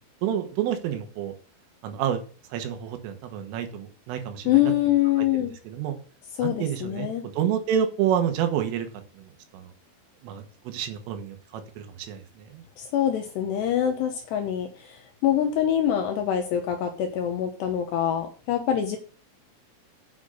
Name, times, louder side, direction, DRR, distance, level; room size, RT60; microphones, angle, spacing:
voice 1, 0.2-1.3 1.8-2.2 2.5-4.7 5.2-6.0 6.4-8.9 9.2-9.7 10.2-12.6, right 9 dB, 75° right, 6 dB, 3.8 m, -29 dB
voice 2, 4.5-5.5 6.4-7.2 12.8-19.0, left 11 dB, 75° left, 5 dB, 2.6 m, -25 dB
8.6 x 7.1 x 6.4 m, 0.40 s
omnidirectional pair, 5.9 m